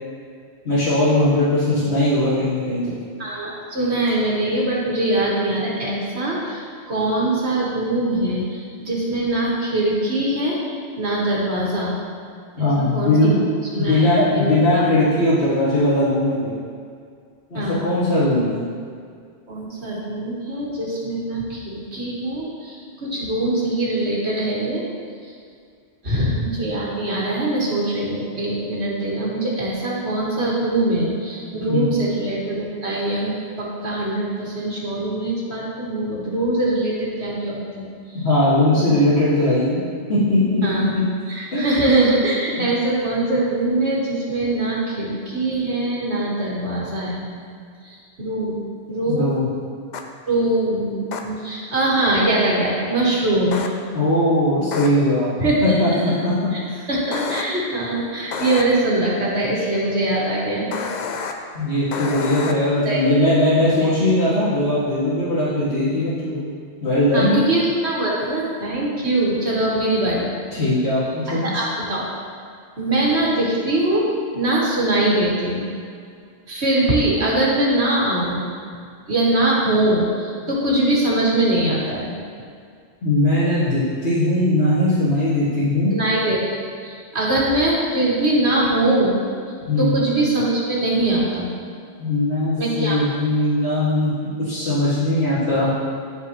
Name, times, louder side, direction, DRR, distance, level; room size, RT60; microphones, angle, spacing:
voice 1, 0.6-2.9 12.6-13.4 13.7-16.6 17.5-18.5 31.7-31.9 38.2-39.8 40.1-41.1 41.5-41.7 49.1-49.5 53.9-55.3 55.6-56.8 61.5-66.5 66.8-67.3 70.5-71.4 83.0-85.9 89.7-89.9 92.0-94.1 94.4-95.7, left 1 dB, 70° left, -13 dB, 2.1 m, -19 dB
voice 2, 3.2-10.6 11.0-12.0 12.5-13.4 13.7-14.8 17.5-17.9 19.5-24.8 26.0-38.2 38.7-39.0 40.6-40.9 41.3-47.4 47.8-49.4 50.3-53.6 55.4-56.0 56.9-60.7 62.9-63.1 67.1-70.3 71.3-72.0 72.8-74.1 74.3-75.7 76.5-78.4 79.1-82.1 85.9-89.2 89.8-91.5 92.6-93.0, right 1 dB, 75° right, -5 dB, 1.9 m, -22 dB
sound 1, 49.9-50.0 51.1-51.2 53.5-53.7 54.7-54.9 57.1-57.4 58.3-58.6 60.7-61.3 61.9-62.5, left 6 dB, 55° left, 0.6 m, -28 dB
13.0 x 4.6 x 3.0 m, 2.2 s
omnidirectional pair, 1.1 m